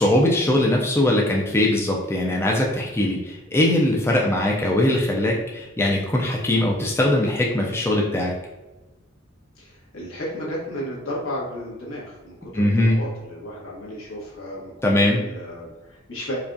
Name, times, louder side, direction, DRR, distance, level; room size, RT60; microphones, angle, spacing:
voice 1, 0.0-8.3 12.5-13.0 14.8-15.2, left 1 dB, 10° left, -2 dB, 0.4 m, -21 dB
voice 2, 9.6-14.7 15.0-16.4, equal, 75° left, -5 dB, 1.4 m, -33 dB
4.8 x 2.3 x 2.6 m, 1.1 s
head